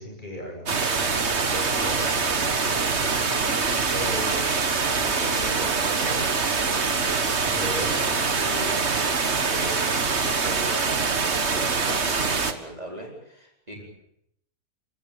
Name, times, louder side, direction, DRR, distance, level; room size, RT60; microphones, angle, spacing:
voice 1, 0.0-4.4 7.4-8.9 13.7-13.8, left 1 dB, 30° left, 0 dB, 8.1 m, -37 dB
sound 1, 0.7-12.5, right 4 dB, 50° right, 1.9 m, -24 dB
voice 2, 4.9-7.0 8.2-9.8 10.2-13.8, right 1 dB, 25° right, -1 dB, 4.4 m, -39 dB
27.5 x 16.5 x 8.7 m, 0.75 s
omnidirectional pair, 1.5 m